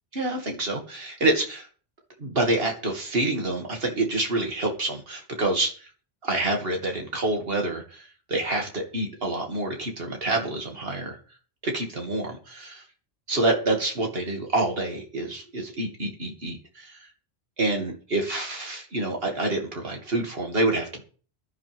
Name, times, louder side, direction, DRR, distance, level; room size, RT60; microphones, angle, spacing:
voice 1, 0.1-1.7 2.2-5.9 6.2-11.2 11.6-12.8 13.3-17.1 17.6-21.0, right 2 dB, 70° right, 2 dB, 2.6 m, -27 dB
15.0 x 11.0 x 3.6 m, 0.40 s
omnidirectional pair, 1.0 m